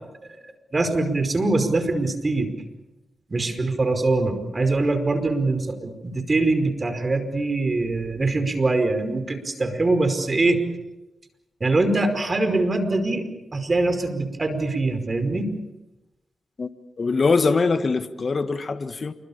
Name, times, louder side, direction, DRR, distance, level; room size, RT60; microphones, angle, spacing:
voice 1, 0.7-2.5 3.3-10.6 11.6-13.3 13.5-15.5, right 2 dB, 40° right, 9 dB, 5.1 m, -23 dB
voice 2, 17.0-19.1, left 4 dB, 50° left, 10 dB, 1.6 m, -22 dB
28.5 x 22.5 x 7.4 m, 1.0 s
supercardioid pair, 45°, 0 cm